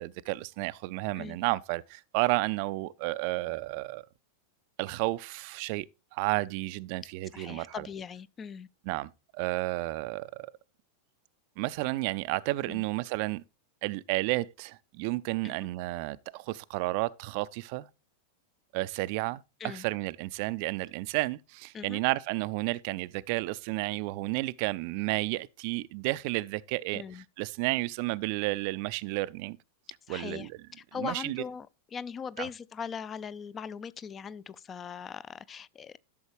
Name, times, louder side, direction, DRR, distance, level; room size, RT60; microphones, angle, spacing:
voice 1, 0.0-4.0 4.8-7.9 8.9-10.5 11.6-13.4 13.8-17.9 18.7-27.0 27.4-29.6 30.1-30.5 31.0-31.4 32.4-32.5, right 21 dB, 45° right, 0.5 m, -32 dB
voice 2, 7.3-8.7 12.7-12.8 15.4-15.6 19.6-19.8 21.7-22.0 26.9-27.2 30.1-30.5 30.8-36.0, left 7 dB, 25° left, 0.5 m, -40 dB
12.0 x 7.0 x 3.1 m
figure-of-eight pair, 90°, 0 cm